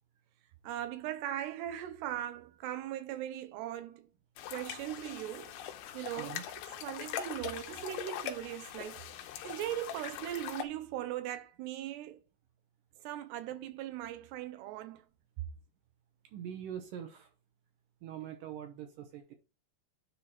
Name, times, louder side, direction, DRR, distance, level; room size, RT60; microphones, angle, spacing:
voice 1, 0.6-4.1 4.5-5.6 5.9-6.4 6.7-12.2 13.0-15.0, right 12 dB, 90° right, 3.0 m, -39 dB
sound 1, 4.4-10.6, left 10 dB, 85° left, 2.8 m, -42 dB
voice 2, 16.3-17.3 18.0-19.4, right 9 dB, 70° right, 2.2 m, -43 dB
9.9 x 3.8 x 4.3 m
omnidirectional pair, 4.7 m